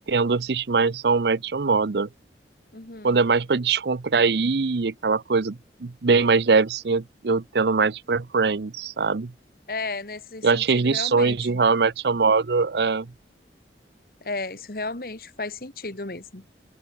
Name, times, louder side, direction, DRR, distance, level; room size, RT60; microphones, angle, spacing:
voice 1, 0.1-2.1 3.0-9.3 10.4-13.1, right 4 dB, 70° right, 0.6 m, -22 dB
voice 2, 2.7-3.2 9.7-11.4 14.2-16.5, left 3 dB, 55° left, 1.7 m, -34 dB
head